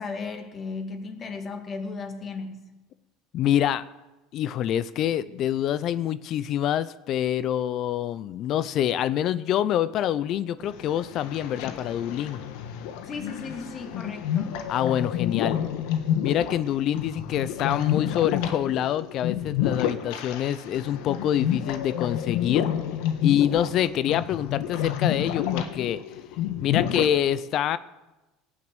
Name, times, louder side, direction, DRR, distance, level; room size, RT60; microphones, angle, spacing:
voice 1, 0.0-2.6 13.0-14.6, left 4 dB, 35° left, 5 dB, 2.3 m, -35 dB
voice 2, 3.3-3.8 4.3-12.4 14.7-15.6 16.2-22.7 23.2-26.0 26.6-27.8, left 11 dB, 50° left, 16 dB, 0.6 m, -26 dB
sound 1, 10.6-27.1, left 10 dB, 70° left, 1.5 m, -29 dB
18.0 x 7.5 x 8.0 m, 1.0 s
supercardioid pair, 105°, 0 cm